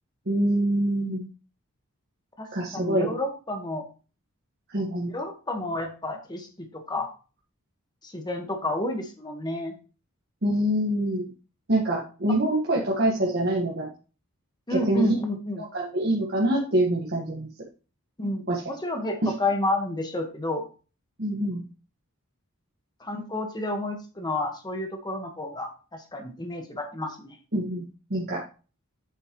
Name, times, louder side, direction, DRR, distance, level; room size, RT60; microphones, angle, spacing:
voice 1, 0.2-1.3 2.5-3.1 4.7-5.1 10.4-11.3 11.7-13.9 14.7-15.1 15.6-17.5 18.5-18.6 19.2-19.3 21.2-21.6 27.5-28.4, right 1 dB, 50° right, -4 dB, 1.6 m, -25 dB
voice 2, 2.7-3.9 5.1-7.1 8.0-9.7 12.3-12.5 14.7-15.6 18.2-20.7 23.0-27.4, left 1 dB, 20° left, 4 dB, 1.5 m, -30 dB
8.5 x 6.8 x 3.1 m, 0.35 s
head